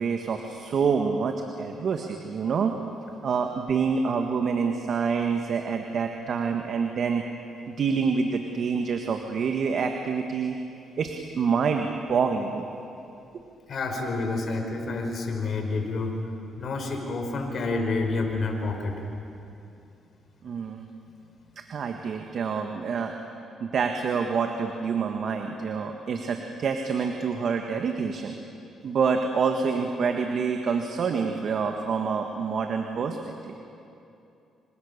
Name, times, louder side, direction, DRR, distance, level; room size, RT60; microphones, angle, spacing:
voice 1, 0.0-2.7 3.2-7.2 7.7-10.6 11.0-12.6 20.4-20.9 21.6-23.1 23.6-28.4 28.8-33.2 33.4-33.5, right 5 dB, 60° right, 4 dB, 1.7 m, -27 dB
voice 2, 13.7-16.1 16.6-18.9, left 3 dB, 55° left, 3 dB, 4.9 m, -28 dB
27.0 x 26.0 x 6.8 m, 2.7 s
cardioid pair, 90°, 0 cm